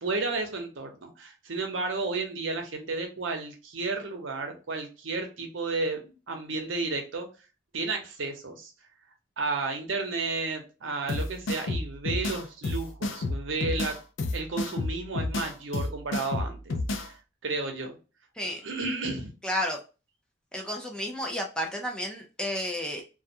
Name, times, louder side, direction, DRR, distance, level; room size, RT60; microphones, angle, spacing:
voice 1, 0.0-6.0 6.3-7.3 7.7-8.7 9.4-14.0 14.3-17.2 17.4-18.0 18.4-19.3, right 3 dB, 85° right, 4 dB, 0.7 m, -32 dB
sound 1, 11.1-17.1, left 2 dB, 85° left, 0.4 m, -31 dB
voice 2, 19.4-19.8 20.5-23.0, equal, 5° left, 0 dB, 0.4 m, -31 dB
2.3 x 2.2 x 2.7 m, 0.31 s
head